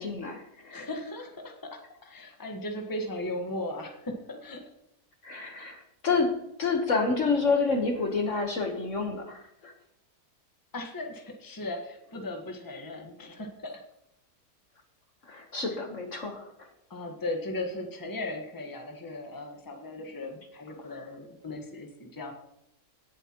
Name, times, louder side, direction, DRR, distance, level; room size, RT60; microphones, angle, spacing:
voice 1, 0.0-0.9 5.2-6.3 6.6-9.7 15.3-16.7, left 4 dB, 50° left, 3 dB, 1.4 m, -29 dB
voice 2, 0.7-4.7 10.7-13.8 15.7-15.8 16.9-22.3, left 1 dB, 15° left, 3 dB, 1.3 m, -37 dB
17.5 x 7.9 x 3.0 m, 0.81 s
omnidirectional pair, 1.8 m